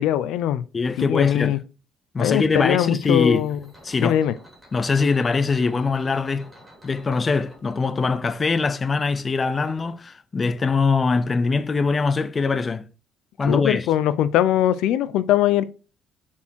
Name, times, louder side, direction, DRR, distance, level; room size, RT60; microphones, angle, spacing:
voice 1, 0.0-0.6 1.0-1.6 2.2-3.6 4.0-4.4 13.5-15.6, left 11 dB, 80° left, 0.5 m, -21 dB
voice 2, 0.7-1.6 2.1-3.4 3.8-4.2 4.7-6.5 6.8-12.9 13.4-13.9, left 4 dB, 20° left, 0.5 m, -22 dB
sound 1, 2.9-9.9, equal, 5° right, 2.7 m, -50 dB
7.1 x 4.4 x 4.5 m
cardioid pair, 160°, 0 cm